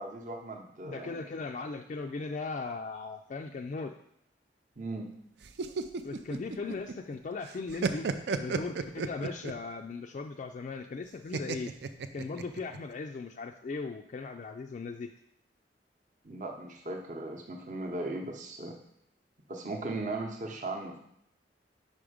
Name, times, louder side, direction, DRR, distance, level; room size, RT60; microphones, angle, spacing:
voice 1, 0.0-1.2 4.8-5.1 16.2-18.7 19.5-21.0, right 2 dB, 45° right, 1 dB, 0.8 m, -37 dB
voice 2, 0.8-3.9 6.0-8.1 8.4-11.7 12.1-15.1, left 4 dB, 45° left, 4 dB, 0.3 m, -38 dB
sound 1, 5.4-7.2 7.5-9.7 11.3-12.8, right 4 dB, 65° right, 0.4 m, -33 dB
5.4 x 4.9 x 5.0 m, 0.74 s
head